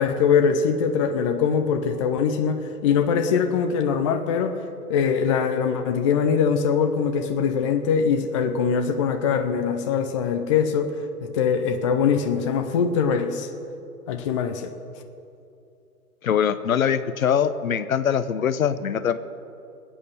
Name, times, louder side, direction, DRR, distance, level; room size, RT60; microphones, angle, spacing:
voice 1, 0.0-4.6 4.9-10.9 11.2-13.5 14.1-14.7, left 6 dB, 20° left, 6 dB, 0.5 m, -22 dB
voice 2, 16.2-19.2, left 8 dB, 60° left, 13 dB, 0.9 m, -22 dB
20.5 x 9.1 x 6.5 m, 2.7 s
figure-of-eight pair, 125°, 46 cm